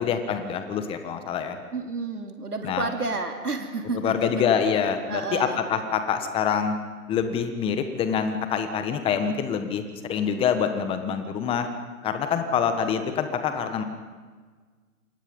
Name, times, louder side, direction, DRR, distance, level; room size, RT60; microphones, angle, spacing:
voice 1, 0.0-1.6 2.6-2.9 3.9-6.8 7.1-11.7 12.0-13.8, left 7 dB, 10° left, 8 dB, 1.4 m, -26 dB
voice 2, 1.7-4.3 5.1-5.6, right 3 dB, 85° right, 4 dB, 3.2 m, -30 dB
29.5 x 25.0 x 5.4 m, 1.5 s
figure-of-eight pair, 140°, 45 cm